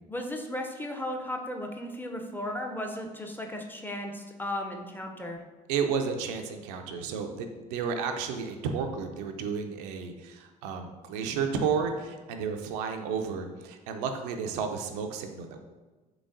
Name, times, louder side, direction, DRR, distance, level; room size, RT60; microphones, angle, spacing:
voice 1, 0.1-5.4, left 1 dB, 10° left, 3 dB, 0.4 m, -35 dB
voice 2, 5.7-15.6, right 6 dB, 65° right, 5 dB, 0.4 m, -32 dB
3.9 x 3.3 x 2.5 m, 1.2 s
figure-of-eight pair, 55°, 21 cm